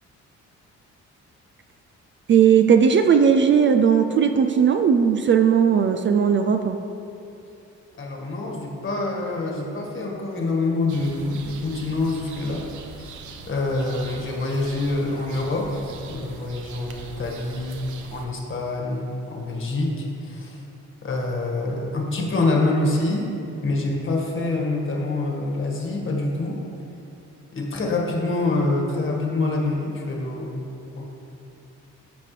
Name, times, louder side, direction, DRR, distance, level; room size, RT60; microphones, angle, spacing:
voice 1, 2.3-6.8, right 7 dB, 40° right, 7 dB, 0.4 m, -17 dB
voice 2, 8.0-12.7 13.0-13.1 13.5-17.8 18.1-20.6 21.0-23.3 23.6-26.6 27.5-30.7 31.0-31.1, left 2 dB, 40° left, -1 dB, 1.7 m, -26 dB
sound 1, 10.9-18.3, right 4 dB, 75° right, 0.8 m, -42 dB
13.5 x 5.1 x 3.3 m, 2.7 s
cardioid pair, 90°, 30 cm